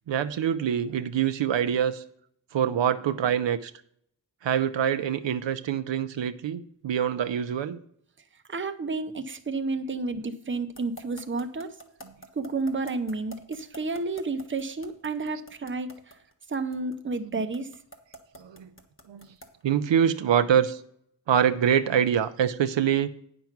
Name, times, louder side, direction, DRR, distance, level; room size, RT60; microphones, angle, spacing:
voice 1, 0.1-2.0 2.5-3.7 4.4-7.8 17.3-17.4 18.4-18.7 19.1-19.3 19.6-20.8 21.3-23.1, right 9 dB, 80° right, 10 dB, 0.6 m, -25 dB
voice 2, 8.5-11.7 12.3-16.0 16.5-17.7, right 3 dB, 25° right, 7 dB, 0.8 m, -31 dB
sound 1, 10.7-19.6, right 1 dB, 30° left, 1.4 m, -46 dB
9.3 x 6.0 x 5.9 m, 0.68 s
wide cardioid pair, 85°, 44 cm